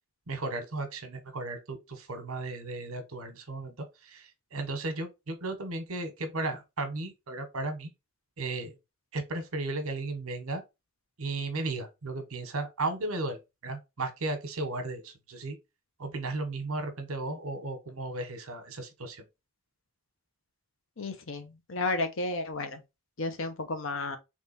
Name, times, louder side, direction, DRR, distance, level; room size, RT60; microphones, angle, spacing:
voice 1, 0.3-3.7 4.0-7.9 8.4-8.7 9.1-10.6 11.2-15.6 16.0-19.2, right 2 dB, 75° right, 1.1 m, -35 dB
voice 2, 21.0-22.8 23.2-24.2, left 2 dB, 60° left, 0.9 m, -32 dB
3.6 x 3.1 x 4.1 m
head